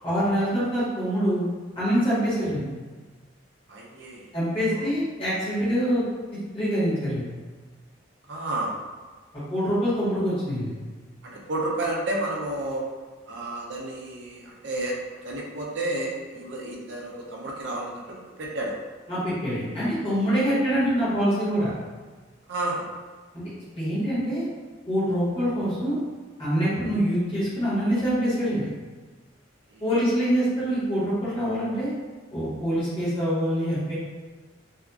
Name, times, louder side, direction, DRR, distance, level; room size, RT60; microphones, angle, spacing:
voice 1, 0.0-1.5 1.7-2.7 4.3-6.0 6.3-7.3 9.5-10.7 19.1-21.7 23.7-24.5 24.9-26.0 26.4-28.7 29.8-31.9 32.3-33.9, equal, 30° left, -12 dB, 1.3 m, -25 dB
voice 2, 3.7-4.3 4.7-4.9 8.3-8.7 11.2-12.9 13.3-15.0 15.2-18.8 22.5-22.8 29.7-29.8, right 2 dB, 65° right, -2 dB, 0.5 m, -31 dB
2.7 x 2.4 x 2.3 m, 1.4 s
head